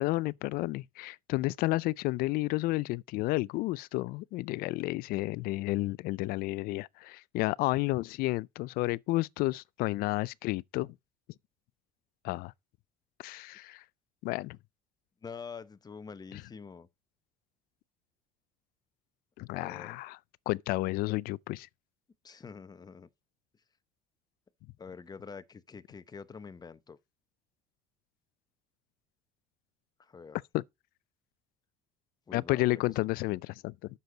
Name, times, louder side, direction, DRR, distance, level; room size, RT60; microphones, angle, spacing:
voice 1, 0.0-10.9 12.2-12.5 13.2-13.8 14.2-14.6 16.3-16.4 19.4-20.2 20.5-21.7 30.5-30.6 32.3-33.7, left 19 dB, 65° left, 0.4 m, -31 dB
voice 2, 15.2-16.9 19.5-20.0 22.2-23.1 24.8-27.0 30.0-30.4 32.3-32.7 33.0-33.1, left 5 dB, 25° left, 0.9 m, -46 dB
9.2 x 6.8 x 3.9 m
supercardioid pair, 90°, 17 cm